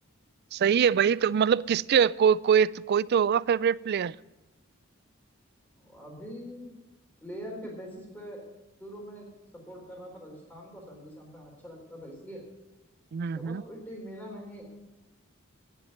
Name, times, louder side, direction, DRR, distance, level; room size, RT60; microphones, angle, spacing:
voice 1, 0.5-4.1 13.1-13.6, right 7 dB, 50° right, 0.3 m, -23 dB
voice 2, 5.8-6.7 7.2-8.4 8.8-9.3 9.7-12.4 13.3-14.7, equal, 10° left, 3.8 m, -43 dB
10.0 x 7.6 x 9.6 m
head